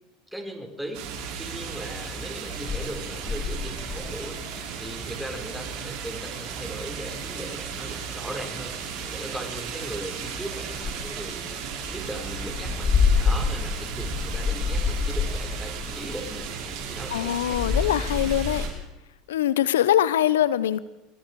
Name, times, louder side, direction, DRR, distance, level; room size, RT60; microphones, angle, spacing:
voice 1, 0.3-1.1 1.4-4.4 4.8-11.6 11.9-12.9 13.2-16.5 16.8-18.2, right 1 dB, 5° right, 2 dB, 5.4 m, -38 dB
sound 1, 0.9-18.7, right 6 dB, 65° right, 6.3 m, -35 dB
sound 2, 1.7-18.7, left 5 dB, 30° left, 1.9 m, -31 dB
voice 2, 17.1-18.6 19.3-20.8, left 11 dB, 85° left, 17 dB, 1.0 m, -23 dB
24.5 x 22.5 x 4.9 m, 0.97 s
hypercardioid pair, 85°, 0 cm